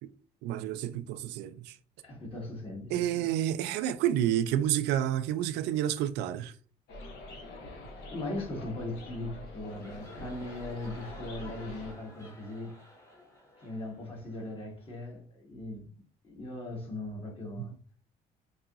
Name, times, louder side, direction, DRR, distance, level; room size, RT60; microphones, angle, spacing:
voice 1, 0.4-1.7 2.9-6.5 17.6-17.7, right 11 dB, 90° right, 0.4 m, -29 dB
voice 2, 2.0-3.3 8.1-12.7 13.6-15.9 16.2-17.8, left 2 dB, 35° left, 1.6 m, -39 dB
sound 1, 6.9-11.9, left 1 dB, 80° left, 1.2 m, -45 dB
sound 2, 9.7-15.1, left 1 dB, 15° left, 1.3 m, -55 dB
4.7 x 2.8 x 2.4 m
cardioid pair, 110°, 17 cm